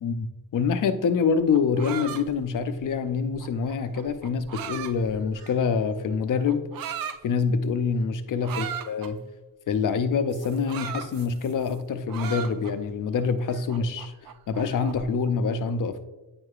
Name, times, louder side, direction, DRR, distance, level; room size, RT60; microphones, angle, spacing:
voice 1, 0.0-6.7 7.2-9.2 9.7-14.1 14.5-16.0, left 5 dB, 50° left, 0.5 m, -26 dB
sound 1, 1.3-5.8 6.5-7.2 8.4-9.1 10.3-11.8 12.1-12.9 13.4-15.1, right 9 dB, 55° right, 0.5 m, -37 dB
8.7 x 4.8 x 2.4 m
cardioid pair, 80°, 41 cm